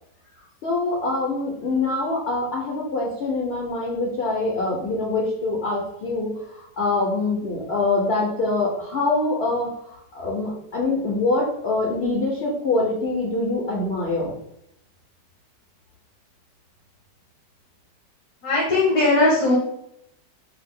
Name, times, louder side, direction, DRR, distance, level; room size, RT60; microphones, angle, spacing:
voice 1, 0.6-14.4, left 2 dB, 45° left, -3 dB, 0.9 m, -24 dB
voice 2, 18.4-19.5, left 2 dB, 75° left, -7 dB, 2.0 m, -18 dB
4.9 x 2.4 x 3.7 m, 0.76 s
omnidirectional pair, 1.9 m